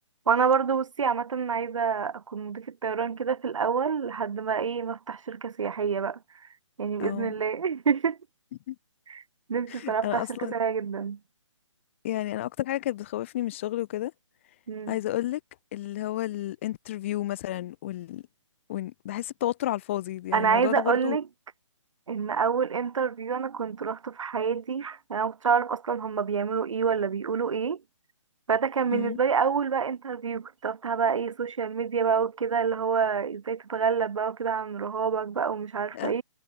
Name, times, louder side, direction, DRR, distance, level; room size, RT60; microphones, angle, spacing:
voice 1, 0.3-6.2 6.8-8.2 9.1-9.2 9.5-11.2 14.7-15.0 20.3-21.2 22.1-27.8 28.5-36.2, right 6 dB, 75° right, 0.9 m, -27 dB
voice 2, 7.0-7.3 8.7-8.8 9.7-10.5 12.0-14.1 14.9-15.4 15.7-18.2 18.7-21.2 28.9-29.2 35.9-36.1, left 14 dB, 25° left, 0.5 m, -31 dB
hypercardioid pair, 150°, 16 cm